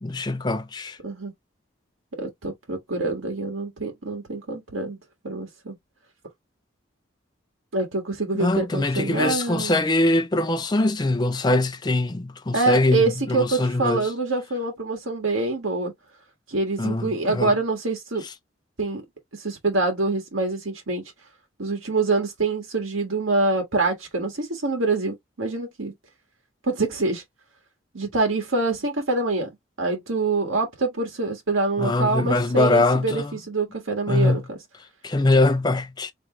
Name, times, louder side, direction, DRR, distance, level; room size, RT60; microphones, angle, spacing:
voice 1, 0.0-1.0 8.3-14.1 16.8-17.5 31.8-33.4 34.1-34.4 35.0-36.1, left 2 dB, 20° left, 0.4 m, -22 dB
voice 2, 2.2-5.0 5.2-5.7 7.7-9.7 12.5-15.9 16.5-18.2 18.8-19.0 19.3-21.0 21.6-25.9 26.7-27.2 27.9-29.5 29.8-34.6, right 3 dB, 90° right, 1.6 m, -25 dB
3.2 x 2.9 x 3.8 m
head